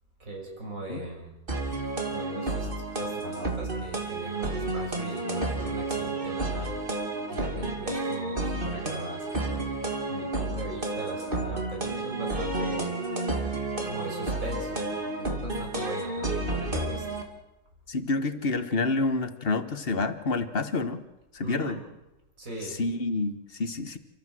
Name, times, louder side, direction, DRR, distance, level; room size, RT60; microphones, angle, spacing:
voice 1, 0.2-1.4 2.1-2.7 3.0-6.8 7.3-9.7 10.1-13.0 13.8-14.9 15.2-17.1 21.4-21.8 22.4-22.8, right 2 dB, 65° right, 0 dB, 6.3 m, -39 dB
sound 1, 1.5-17.2, right 2 dB, 35° right, 2.8 m, -31 dB
voice 2, 17.9-21.0 21.3-21.8 22.8-24.0, left 3 dB, 40° left, 10 dB, 1.5 m, -28 dB
29.5 x 14.0 x 7.8 m, 0.96 s
omnidirectional pair, 1.5 m